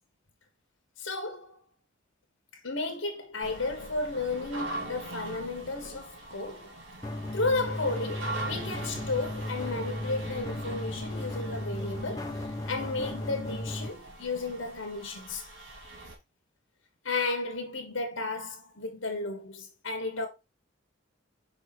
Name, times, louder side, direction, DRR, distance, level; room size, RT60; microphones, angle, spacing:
voice 1, 1.0-1.6 2.6-6.7 7.3-12.3 12.7-15.5 17.0-20.3, left 3 dB, 80° left, 1.4 m, -33 dB
sound 1, 3.4-16.1, right 2 dB, 75° right, 2.1 m, -42 dB
sound 2, 7.0-13.9, left 1 dB, 20° left, 0.8 m, -36 dB
5.2 x 4.7 x 4.2 m
head